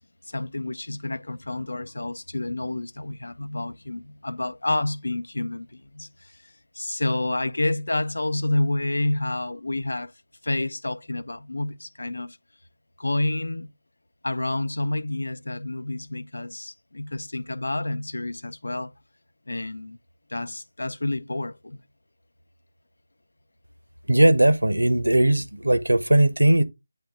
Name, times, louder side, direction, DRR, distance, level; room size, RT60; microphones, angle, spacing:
voice 1, 0.2-10.1 10.4-12.4 13.0-13.7 14.2-18.9 19.5-20.0 20.3-21.8, left 2 dB, 70° left, 0.6 m, -29 dB
voice 2, 24.1-26.6, right 1 dB, 85° right, 0.9 m, -18 dB
8.9 x 3.4 x 3.6 m
figure-of-eight pair, 160°, 0 cm